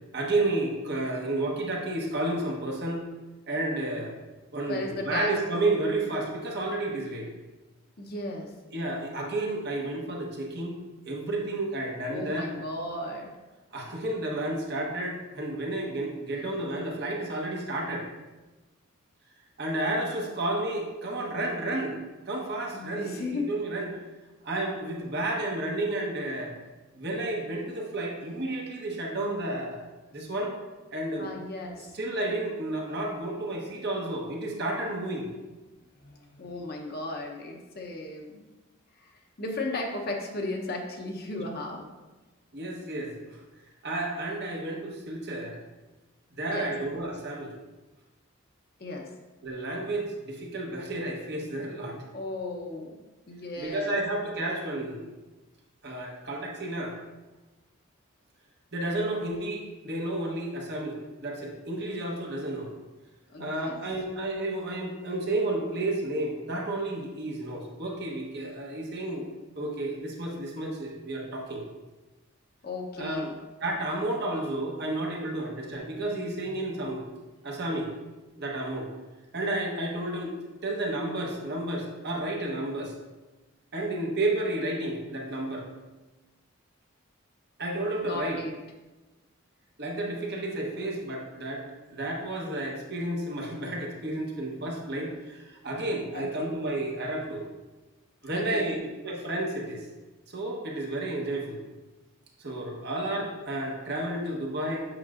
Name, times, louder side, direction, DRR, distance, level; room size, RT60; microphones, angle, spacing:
voice 1, 0.1-3.0 3.5-4.2 4.5-7.3 8.7-10.8 11.0-12.5 13.7-18.1 19.6-21.9 22.3-23.9 24.4-26.5 26.9-29.8 30.1-30.5 30.9-31.3 31.8-35.3 42.5-43.4 43.8-45.6 46.3-47.6 49.4-52.0 53.6-55.1 55.8-57.0 58.7-62.7 63.4-69.3 69.6-71.6 73.0-73.3 73.6-77.0 77.4-77.9 78.4-78.9 79.3-80.3 80.6-82.9 83.7-85.6 87.6-88.4 89.8-97.5 98.2-99.9 100.3-101.6 102.4-104.9, right 1 dB, 50° right, -1 dB, 1.1 m, -31 dB
voice 2, 4.7-5.3 8.0-8.5 12.1-13.3 16.4-16.6 22.7-23.5 31.2-31.9 36.0-38.5 39.0-39.1 39.4-41.9 46.5-46.7 48.8-49.1 52.1-53.0 53.3-54.0 63.3-63.8 72.6-73.4 76.5-76.6 88.0-88.5 96.1-96.6 98.3-98.7, left 2 dB, 45° left, 1 dB, 0.8 m, -35 dB
7.9 x 6.0 x 2.5 m, 1.2 s
head